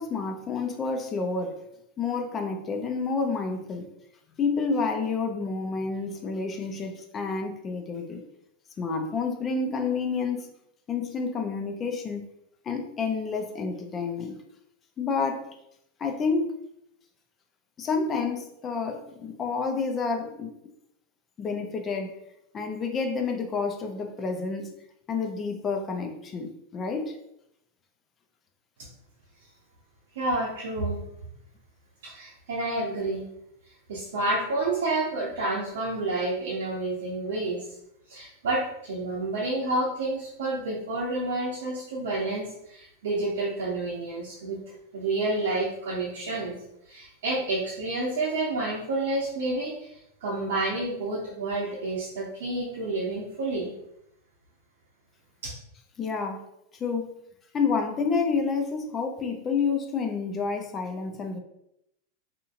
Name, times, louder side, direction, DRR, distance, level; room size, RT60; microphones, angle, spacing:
voice 1, 0.0-1.6 2.0-3.9 4.4-8.2 8.8-10.5 10.9-12.2 12.7-14.3 15.0-15.5 16.0-16.5 17.8-20.5 21.4-22.2 22.5-24.7 25.1-27.2 56.0-56.5 56.8-57.1 57.5-61.4, left 4 dB, 30° left, 4 dB, 0.5 m, -29 dB
voice 2, 30.1-31.0 32.0-33.2 33.9-37.7 38.1-44.6 44.9-46.5 46.9-53.7 55.4-55.5, right 2 dB, 75° right, -4 dB, 0.7 m, -29 dB
2.8 x 2.6 x 2.5 m, 0.79 s
hypercardioid pair, 115°, 0 cm